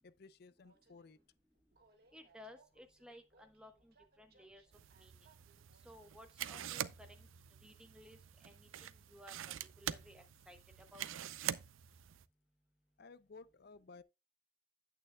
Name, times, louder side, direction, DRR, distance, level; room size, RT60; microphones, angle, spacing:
voice 1, 0.0-1.2 13.0-14.0, left 4 dB, 55° left, 0.5 m, -57 dB
Train, 0.6-9.2, right 3 dB, 50° right, 1.4 m, -72 dB
voice 2, 2.1-4.6 4.9-5.1 5.8-7.3 7.6-9.3 9.8-10.6 10.9-11.1, left 1 dB, 5° right, 1.0 m, -58 dB
sound 1, 4.7-12.2, right 10 dB, 90° right, 0.4 m, -45 dB
8.9 x 8.7 x 2.2 m
head